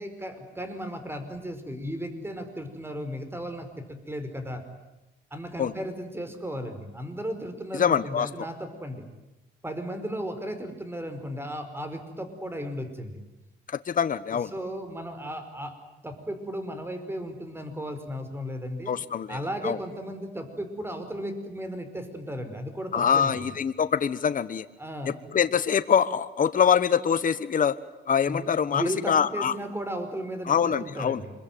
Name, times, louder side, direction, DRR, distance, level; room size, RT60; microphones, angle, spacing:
voice 1, 0.0-4.6 5.3-9.0 9.6-13.2 14.3-15.8 16.0-18.9 19.3-23.5 24.8-25.1 28.3-31.3, equal, 10° right, 8 dB, 5.1 m, -35 dB
voice 2, 7.7-8.3 13.9-14.5 18.9-19.4 19.6-19.8 22.9-24.7 25.3-27.8 28.1-29.5 30.5-31.2, left 7 dB, 45° left, 12 dB, 1.1 m, -24 dB
26.5 x 22.0 x 9.3 m, 0.99 s
cardioid pair, 90°, 20 cm